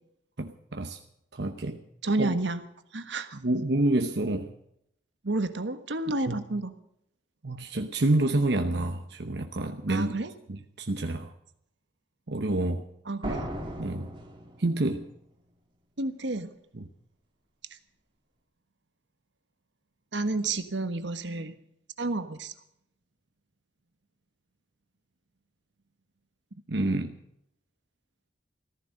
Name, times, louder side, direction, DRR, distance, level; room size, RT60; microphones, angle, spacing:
voice 1, 0.4-1.0 1.3-1.8 2.2-2.3 3.4-4.5 6.3-6.4 7.4-10.1 10.8-11.3 12.3-12.9 13.8-14.1 14.6-15.1 16.8-16.9 26.7-27.1, right 2 dB, 65° right, 5 dB, 1.0 m, -28 dB
voice 2, 2.0-2.6 2.9-3.4 5.2-6.7 9.9-10.3 13.1-13.4 16.0-16.5 20.1-21.5 22.0-22.5, right 2 dB, 80° right, 9 dB, 1.4 m, -30 dB
sound 1, 13.2-15.0, right 1 dB, 30° right, 2.8 m, -37 dB
15.0 x 14.5 x 6.5 m, 0.74 s
head